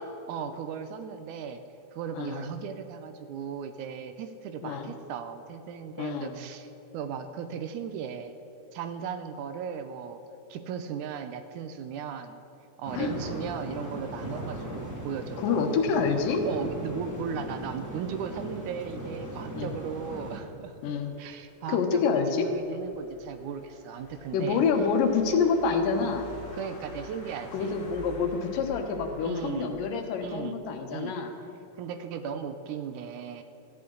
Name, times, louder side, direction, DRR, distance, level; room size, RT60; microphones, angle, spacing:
voice 1, 0.3-1.6 1.9-8.4 8.7-10.2 10.5-12.4 12.8-15.8 16.5-20.7 21.2-24.6 26.5-27.8 29.2-29.8 30.2-30.6 30.9-31.2 31.8-33.4, right 7 dB, 75° right, 9 dB, 2.1 m, -37 dB
voice 2, 6.0-6.3 12.9-13.1 15.4-16.4 19.5-19.7 20.8-21.1 21.7-22.5 24.3-26.3 27.5-31.3, left 5 dB, 90° left, 5 dB, 2.8 m, -27 dB
sound 1, 12.9-20.4, right 1 dB, 5° right, 1.5 m, -38 dB
sound 2, 19.3-30.1, equal, 50° left, 2.6 m, -49 dB
17.5 x 14.0 x 3.9 m, 2.7 s
omnidirectional pair, 3.8 m